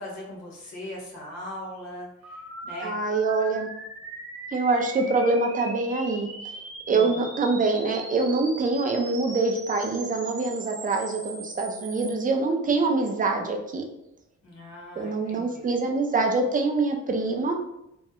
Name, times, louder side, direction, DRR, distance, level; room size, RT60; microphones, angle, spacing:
voice 1, 0.0-2.9 6.9-7.2 14.4-15.6, left 1 dB, 60° left, -3 dB, 1.3 m, -40 dB
sound 1, 2.2-12.1, right 3 dB, 50° right, 0.9 m, -40 dB
voice 2, 2.8-3.7 4.5-6.3 6.9-13.8 15.0-17.5, right 3 dB, 25° right, 3 dB, 0.5 m, -25 dB
3.1 x 2.2 x 2.9 m, 0.84 s
cardioid pair, 90°, 30 cm